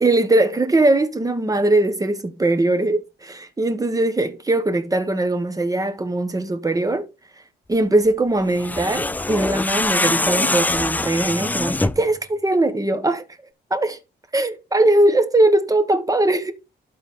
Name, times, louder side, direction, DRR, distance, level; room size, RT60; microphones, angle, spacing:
voice 1, 0.0-7.1 7.7-13.2 13.7-14.0 14.3-16.5, right 2 dB, 15° right, 1.3 m, -20 dB
sound 1, 8.5-12.1, left 2 dB, 10° left, 0.3 m, -23 dB
12.0 x 4.2 x 3.8 m
cardioid pair, 90°, 20 cm